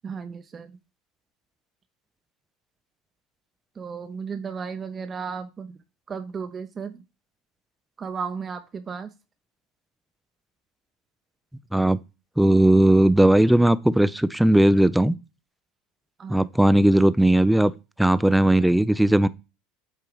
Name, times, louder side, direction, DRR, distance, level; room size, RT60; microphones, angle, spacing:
voice 1, 0.0-0.8 3.8-5.8 6.1-7.0 8.0-9.1 16.2-16.5, right 6 dB, 30° right, 0.7 m, -34 dB
voice 2, 12.4-15.1 16.3-17.7 18.0-19.3, right 1 dB, 5° right, 0.5 m, -18 dB
8.3 x 2.8 x 4.8 m
hypercardioid pair, 80°, 0 cm